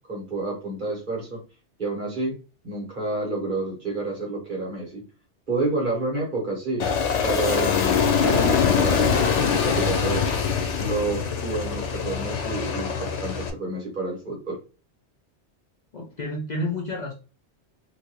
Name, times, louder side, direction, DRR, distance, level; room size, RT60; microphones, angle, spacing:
voice 1, 0.1-1.4 1.8-2.4 2.6-5.0 5.5-6.9 7.2-10.3 10.8-14.6, right 2 dB, 45° right, -2 dB, 1.6 m, -29 dB
Aircraft, 6.8-13.5, left 6 dB, 90° left, 0.9 m, -23 dB
voice 2, 15.9-17.1, left 1 dB, 50° left, -1 dB, 0.6 m, -30 dB
3.1 x 2.6 x 3.0 m, 0.31 s
omnidirectional pair, 1.2 m